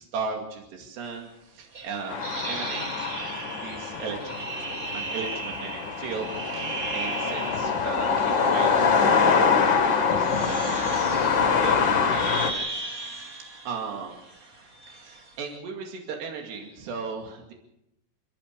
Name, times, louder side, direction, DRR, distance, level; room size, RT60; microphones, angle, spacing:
voice 1, 0.0-3.2 3.5-4.5 4.9-8.9 9.2-12.8 13.7-14.3 14.9-17.5, right 5 dB, 90° right, 1 dB, 4.5 m, -37 dB
sound 1, 1.7-8.0 8.8-9.4 10.1-15.4, right 3 dB, 50° right, 1.0 m, -37 dB
sound 2, 2.1-12.5, left 5 dB, 40° left, 1.8 m, -24 dB
28.5 x 15.5 x 6.7 m, 0.82 s
omnidirectional pair, 4.7 m